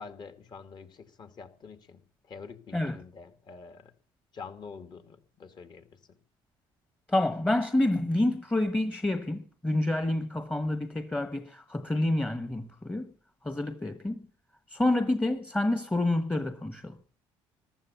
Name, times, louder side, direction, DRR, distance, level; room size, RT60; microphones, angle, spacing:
voice 1, 0.0-2.0 2.3-3.9 4.3-6.2, left 5 dB, 45° left, 2.5 m, -46 dB
voice 2, 7.1-13.1 13.4-14.2 14.7-17.0, left 1 dB, 10° left, 1.3 m, -28 dB
14.5 x 12.5 x 7.1 m
supercardioid pair, 90°, 10 cm